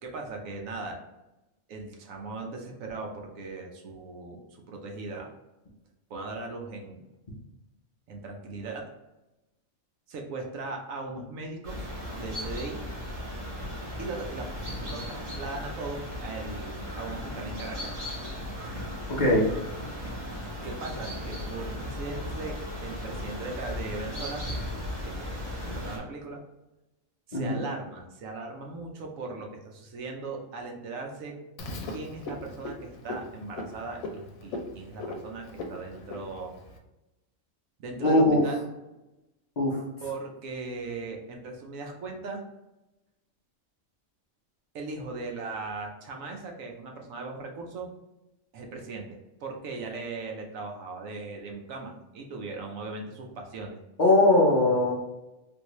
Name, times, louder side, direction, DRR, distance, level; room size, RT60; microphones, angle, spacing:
voice 1, 0.0-1.0 1.7-5.3 6.1-7.0 8.1-8.9 10.1-12.8 14.0-14.5 14.8-17.9 20.6-24.4 25.0-25.4 25.7-26.4 27.3-31.3 31.8-36.6 37.8-38.6 40.0-42.4 44.7-47.9 48.5-53.8, right 3 dB, 75° right, 1 dB, 1.1 m, -38 dB
sound 1, 11.6-26.0, left 1 dB, 35° right, 1.4 m, -36 dB
voice 2, 19.1-19.4 27.3-27.6 38.0-38.4 39.6-39.8 54.0-54.9, left 2 dB, 40° left, -5 dB, 0.7 m, -21 dB
Frog, 31.6-36.8, left 2 dB, 90° left, 1.1 m, -39 dB
3.6 x 2.6 x 3.0 m, 0.98 s
omnidirectional pair, 1.4 m